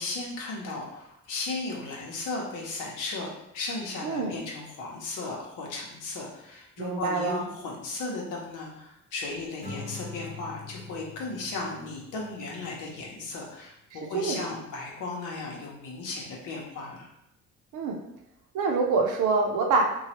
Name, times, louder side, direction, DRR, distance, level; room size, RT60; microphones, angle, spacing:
voice 1, 0.0-3.3 3.5-17.1, left 3 dB, 85° left, -2 dB, 0.8 m, -36 dB
voice 2, 4.0-4.3 6.8-7.4 14.1-14.5 17.7-18.0 18.5-19.8, right 4 dB, 80° right, 2 dB, 0.6 m, -25 dB
Acoustic guitar / Strum, 9.6-12.9, left 3 dB, 30° left, 0.8 m, -43 dB
3.0 x 2.3 x 2.8 m, 0.81 s
cardioid pair, 90°, 30 cm